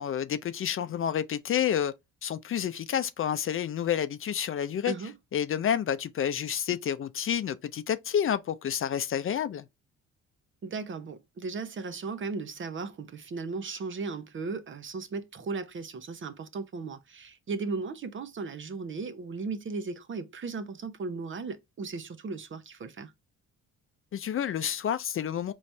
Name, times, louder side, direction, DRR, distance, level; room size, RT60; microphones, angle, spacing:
voice 1, 0.0-1.9 2.2-4.9 5.3-9.7 24.1-25.5, left 9 dB, 45° left, 0.5 m, -29 dB
voice 2, 10.6-23.1, right 4 dB, 40° right, 0.7 m, -36 dB
4.0 x 3.1 x 3.2 m
cardioid pair, 90°, 30 cm